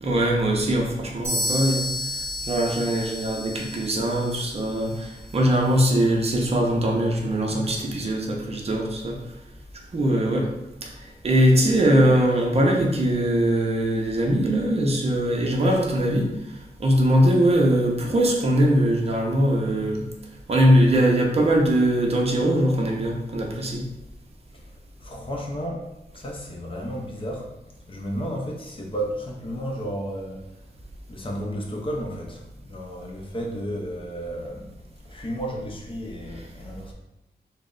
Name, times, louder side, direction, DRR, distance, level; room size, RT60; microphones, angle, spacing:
voice 1, 0.0-1.9 2.5-9.2 9.9-10.5 10.8-16.5 16.8-20.0 20.5-23.8, right 1 dB, 40° right, 0 dB, 0.6 m, -21 dB
sound 1, 1.2-5.0, left 1 dB, 5° left, 0.9 m, -31 dB
voice 2, 25.0-27.5 27.9-30.5 31.1-34.7 35.0-36.9, equal, 30° left, 0 dB, 0.6 m, -33 dB
3.1 x 2.1 x 3.7 m, 0.91 s
wide cardioid pair, 160°, 17 cm